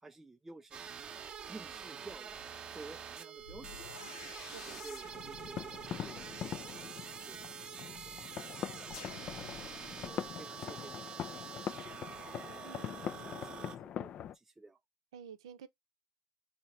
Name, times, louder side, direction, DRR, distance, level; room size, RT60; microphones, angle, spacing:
voice 1, 0.0-0.9 1.5-2.4 2.7-3.8 4.7-6.9 7.3-8.8 9.8-12.4 12.8-13.0 13.2-14.8, right 3 dB, 10° right, 0.4 m, -54 dB
sound 1, 0.7-13.8, right 7 dB, 35° right, 0.8 m, -46 dB
sound 2, 1.7-1.9 3.4-7.5 8.9-10.3, left 7 dB, 90° left, 0.6 m, -53 dB
voice 2, 4.4-4.9 12.6-12.9 15.1-15.7, right 7 dB, 90° right, 0.6 m, -51 dB
sound 3, 5.0-14.4, left 9 dB, 50° left, 0.4 m, -43 dB
4.2 x 2.8 x 4.3 m
supercardioid pair, 85°, 3 cm